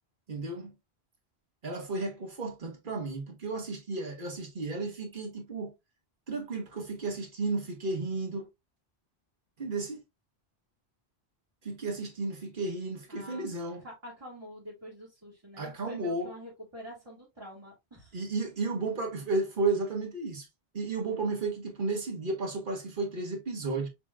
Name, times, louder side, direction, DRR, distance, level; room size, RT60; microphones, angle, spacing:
voice 1, 0.3-0.7 1.6-5.7 6.3-8.5 9.6-10.0 11.6-13.8 15.6-16.3 18.1-20.5 20.7-23.9, right 3 dB, 50° right, 1.4 m, -33 dB
voice 2, 13.1-13.6 13.8-18.2, equal, 25° right, 1.9 m, -46 dB
6.7 x 3.0 x 2.3 m
omnidirectional pair, 1.1 m